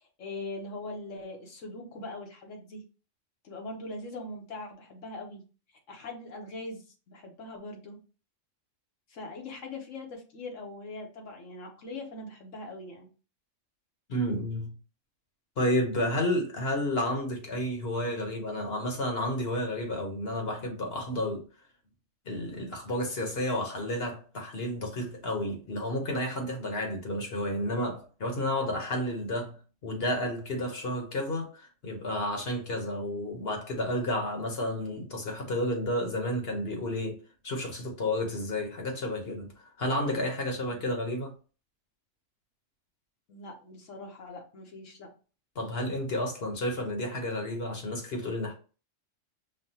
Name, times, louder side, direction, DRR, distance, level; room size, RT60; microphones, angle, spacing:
voice 1, 0.0-2.8 3.4-5.4 5.9-8.0 9.1-13.1 15.9-16.2 43.3-45.1, left 2 dB, 80° left, 1.3 m, -41 dB
voice 2, 14.1-14.7 15.6-21.5 22.2-29.6 29.8-41.3 45.5-48.5, left 1 dB, 55° left, 1.2 m, -31 dB
5.5 x 2.3 x 2.8 m
omnidirectional pair, 1.3 m